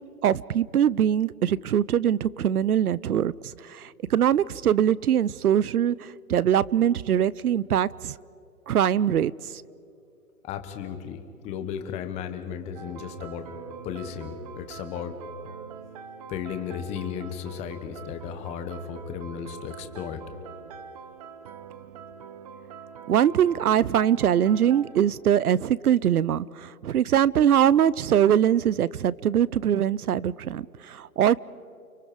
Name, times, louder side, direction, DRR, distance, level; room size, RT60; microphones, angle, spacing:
voice 1, 0.2-3.3 3.7-8.1 8.7-9.3 23.1-31.4, right 10 dB, 80° right, 22 dB, 0.7 m, -22 dB
voice 2, 10.4-13.5 13.8-15.2 16.3-20.2, left 8 dB, 15° left, 8 dB, 1.1 m, -35 dB
sound 1, 12.8-25.0, right 7 dB, 25° right, 0.9 m, -44 dB
30.0 x 23.0 x 5.1 m, 2.6 s
hypercardioid pair, 150°, 44 cm